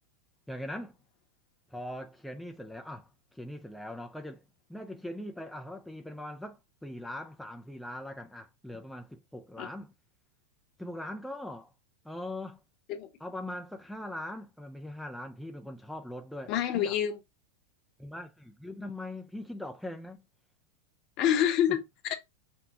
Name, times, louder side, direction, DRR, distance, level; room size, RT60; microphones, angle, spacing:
voice 1, 0.5-1.0 1.7-4.4 4.7-9.9 10.8-11.7 12.0-12.6 13.2-17.0 18.0-20.2, left 1 dB, ahead, 0.4 m, -41 dB
voice 2, 16.5-17.2 21.2-22.2, left 10 dB, 40° left, 0.9 m, -27 dB
5.8 x 2.2 x 4.1 m
figure-of-eight pair, 90°, 0 cm